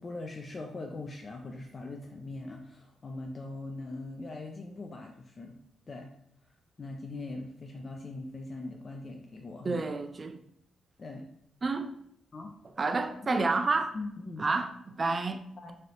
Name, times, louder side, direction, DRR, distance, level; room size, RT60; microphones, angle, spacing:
voice 1, 0.0-5.6 5.9-6.1 6.8-9.8 11.0-11.3 12.3-12.5 12.8-13.5 13.9-14.4 15.6-15.8, left 2 dB, 45° left, 2 dB, 0.3 m, -41 dB
voice 2, 9.6-10.4 11.6-11.9 12.8-13.9 14.4-15.4, right 3 dB, 40° right, 7 dB, 0.3 m, -29 dB
3.1 x 2.6 x 2.8 m, 0.71 s
cardioid pair, 75°, 0 cm